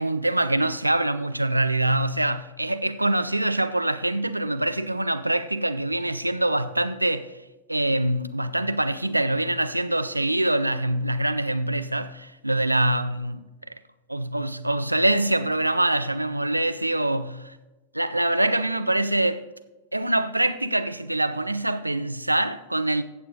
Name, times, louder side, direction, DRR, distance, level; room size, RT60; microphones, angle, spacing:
voice 1, 0.0-7.3 7.7-13.5 14.1-17.4 17.9-19.5 19.9-23.0, right 1 dB, 85° right, 0.5 m, -24 dB
15.5 x 6.7 x 4.0 m
figure-of-eight pair, 90°, 0 cm